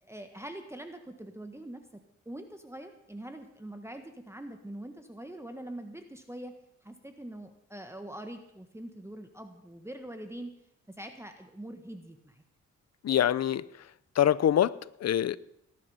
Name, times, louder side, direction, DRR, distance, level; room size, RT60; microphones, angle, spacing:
voice 1, 0.0-1.8 2.2-6.5 6.8-10.5 11.0-12.4, right 1 dB, 10° right, 1.4 m, -43 dB
voice 2, 13.0-13.7 14.1-15.4, left 10 dB, 60° left, 0.6 m, -25 dB
19.0 x 11.0 x 5.6 m
cardioid pair, 90°, 30 cm